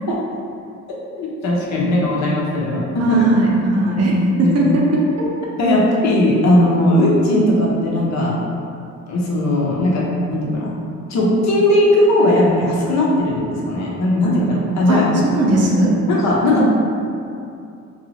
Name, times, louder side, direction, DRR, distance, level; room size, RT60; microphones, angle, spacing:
voice 1, 1.2-3.2 4.4-4.6 5.6-8.4 9.1-10.7 11.1-15.0 16.1-16.7, left 1 dB, 65° left, -3 dB, 0.7 m, -17 dB
voice 2, 3.0-5.3 14.9-15.9, right 1 dB, 55° right, -3 dB, 0.6 m, -18 dB
2.6 x 2.3 x 3.0 m, 2.5 s
cardioid pair, 90°, 30 cm